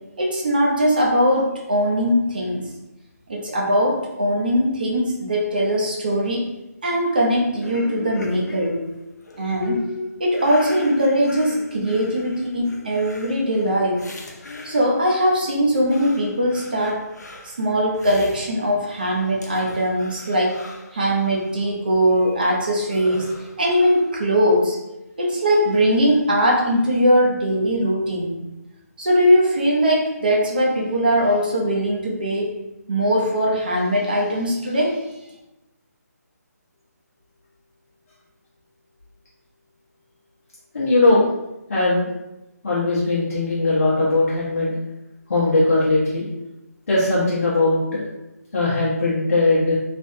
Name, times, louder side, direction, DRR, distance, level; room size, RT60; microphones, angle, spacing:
voice 1, 0.2-2.7 3.3-6.5 6.8-8.8 9.4-9.8 10.2-14.0 14.6-17.1 17.4-20.7 20.9-24.8 25.2-28.4 29.0-32.5 32.9-35.0, equal, 30° right, -2 dB, 0.6 m, -20 dB
sound 1, 7.6-15.1 15.6-19.1 19.4-21.5 22.0-24.1, left 2 dB, 75° left, 0.6 m, -38 dB
voice 2, 40.7-41.3 41.7-42.1 42.6-44.7 45.3-46.3 46.9-48.0 48.5-49.7, left 2 dB, 55° left, -9 dB, 0.9 m, -19 dB
3.3 x 2.1 x 2.6 m, 0.95 s
hypercardioid pair, 175°, 9 cm